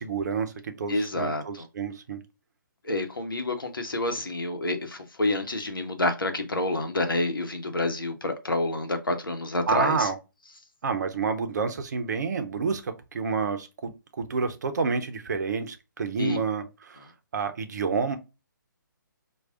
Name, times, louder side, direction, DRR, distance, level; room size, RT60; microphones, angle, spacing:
voice 1, 0.0-2.2 9.7-10.1 10.8-17.1 17.3-18.2, right 5 dB, 55° right, 0.7 m, -29 dB
voice 2, 0.9-1.7 2.8-10.1 16.2-16.4, left 2 dB, 85° left, 0.8 m, -28 dB
4.5 x 2.3 x 2.4 m
figure-of-eight pair, 140°, 11 cm